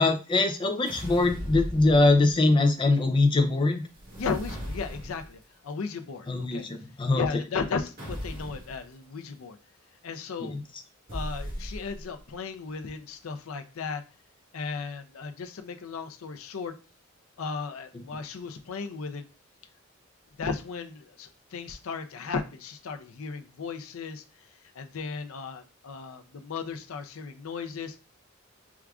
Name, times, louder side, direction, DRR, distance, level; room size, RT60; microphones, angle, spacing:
voice 1, 0.0-3.8 6.3-7.2 10.4-10.5, left 2 dB, 25° left, 6 dB, 0.3 m, -22 dB
sound 1, 0.8-2.5 3.9-5.4 8.0-8.8 11.1-12.2, equal, 45° right, 1.8 m, -37 dB
voice 2, 4.2-6.7 7.1-9.6 10.0-10.6 11.1-14.0 14.5-16.7 17.4-19.2 20.4-24.2 24.8-28.0, left 5 dB, 85° left, 8 dB, 0.5 m, -35 dB
4.6 x 2.4 x 2.3 m, 0.33 s
head